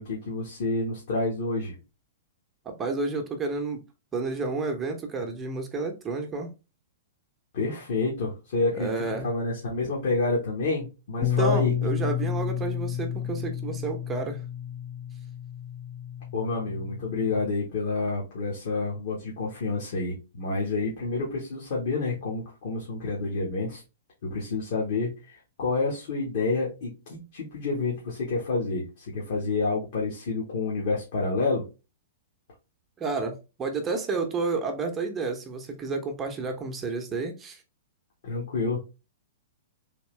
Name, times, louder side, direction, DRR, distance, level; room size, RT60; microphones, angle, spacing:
voice 1, 0.0-1.7 7.5-8.9 9.2-11.7 16.3-23.8 24.2-31.7 38.2-38.8, left 3 dB, 55° left, 1.4 m, -29 dB
voice 2, 2.6-3.8 4.1-6.5 8.8-9.3 11.2-14.4 33.0-37.6, right 4 dB, 20° right, 0.8 m, -30 dB
Bass guitar, 11.2-17.5, left 9 dB, 30° left, 0.6 m, -31 dB
3.6 x 2.9 x 3.2 m
figure-of-eight pair, 110°, 0 cm